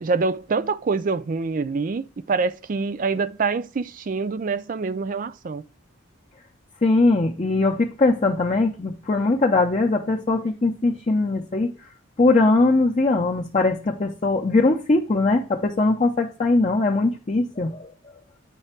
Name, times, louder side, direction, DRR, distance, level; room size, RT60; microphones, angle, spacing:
voice 1, 0.0-5.6, right 4 dB, 45° right, 0.4 m, -25 dB
voice 2, 6.8-11.7 12.2-17.9, left 2 dB, 35° left, 0.6 m, -21 dB
9.0 x 3.3 x 4.4 m
head